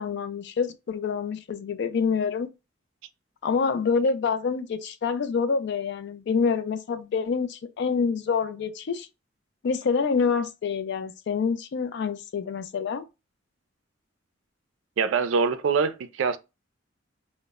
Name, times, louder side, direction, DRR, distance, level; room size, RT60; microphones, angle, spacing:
voice 1, 0.0-2.5 3.4-9.1 9.6-13.0, left 5 dB, 60° left, 0.3 m, -27 dB
voice 2, 15.0-16.4, right 5 dB, 85° right, 0.3 m, -24 dB
2.0 x 2.0 x 3.4 m
head